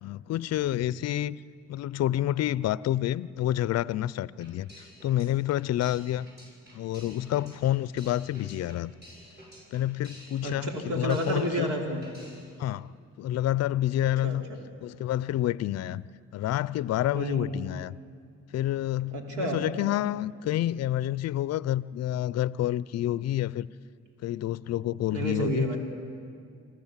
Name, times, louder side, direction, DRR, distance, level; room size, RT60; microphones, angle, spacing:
voice 1, 0.0-1.4 1.7-6.3 6.7-8.9 9.7-11.7 12.6-12.9 13.2-14.4 14.8-16.0 16.3-17.9 18.5-23.7 24.2-25.7, left 13 dB, 60° left, 0.5 m, -28 dB
sound 1, 4.4-11.8 12.0-12.6, equal, 35° right, 7.6 m, -51 dB
voice 2, 10.4-12.0 14.0-14.6 17.1-17.5 19.1-19.6 25.1-25.8, right 1 dB, 80° right, 3.1 m, -31 dB
25.0 x 14.5 x 7.4 m
cardioid pair, 90°, 30 cm